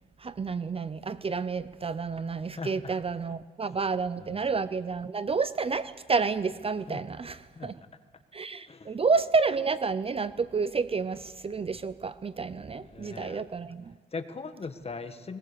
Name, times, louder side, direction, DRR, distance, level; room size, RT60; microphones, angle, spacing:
voice 1, 0.2-7.7 8.3-13.9, right 4 dB, 30° right, 15 dB, 0.6 m, -30 dB
voice 2, 2.5-3.0 4.2-4.4 6.9-7.0 7.5-7.7 8.7-9.0 12.8-13.5 14.1-15.4, left 4 dB, 30° left, 9 dB, 1.6 m, -39 dB
20.5 x 20.0 x 6.9 m, 1.4 s
cardioid pair, 90°, 20 cm